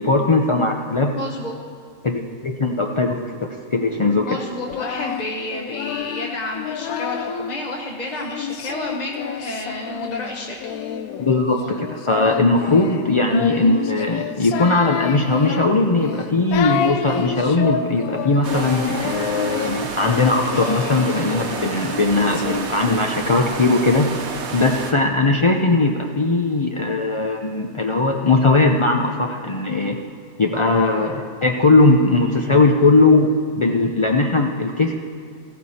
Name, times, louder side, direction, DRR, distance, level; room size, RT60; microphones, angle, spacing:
voice 1, 0.0-1.1 2.0-3.2 3.7-4.4 11.2-24.1 24.5-30.0 30.4-34.9, left 3 dB, 55° left, 1 dB, 0.3 m, -19 dB
voice 2, 1.1-1.5 3.9-10.7, left 2 dB, 35° left, -1 dB, 0.9 m, -30 dB
Singing, 4.5-7.6 8.1-22.6, left 7 dB, 80° left, 1.1 m, -29 dB
sound 1, 18.4-24.9, right 4 dB, 55° right, 1.2 m, -30 dB
15.0 x 12.5 x 4.3 m, 2.2 s
omnidirectional pair, 1.5 m